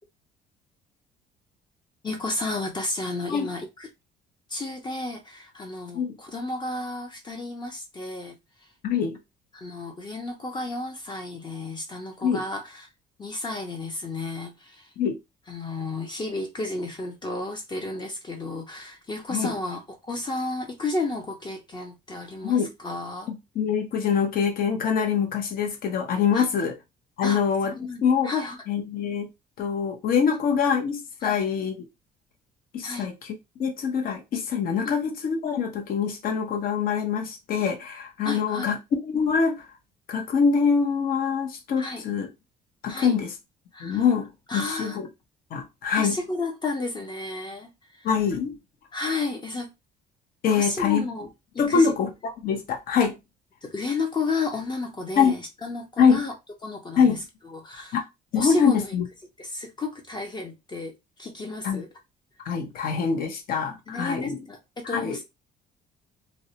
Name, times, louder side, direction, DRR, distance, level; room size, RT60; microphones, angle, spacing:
voice 1, 2.0-3.9 4.5-8.4 9.5-12.9 13.2-14.9 15.5-23.3 26.3-26.5 27.2-28.6 31.2-31.4 32.8-33.1 34.8-34.9 38.2-38.7 41.8-42.0 42.9-43.1 43.7-44.0 44.5-45.0 46.0-48.1 48.9-49.7 50.5-51.3 51.5-51.9 53.6-56.3 56.6-57.2 57.4-58.0 58.4-58.9 59.4-60.9 61.2-61.9 63.9-65.2, left 3 dB, 25° left, 0.6 m, -32 dB
voice 2, 8.8-9.2 12.2-12.4 15.0-15.2 19.3-19.5 22.4-22.7 23.3-26.7 27.2-28.3 28.7-29.3 29.6-31.8 32.7-38.8 39.0-39.6 40.1-42.3 42.8-43.3 43.8-45.1 45.5-46.2 48.0-48.5 50.4-51.1 51.6-53.2 55.2-55.3 56.0-56.2 57.0-57.2 57.9-58.0 58.3-59.0 61.6-61.8 62.4-64.4 64.8-65.2, left 6 dB, 60° left, 0.8 m, -24 dB
2.5 x 2.1 x 2.7 m
cardioid pair, 110°, 17 cm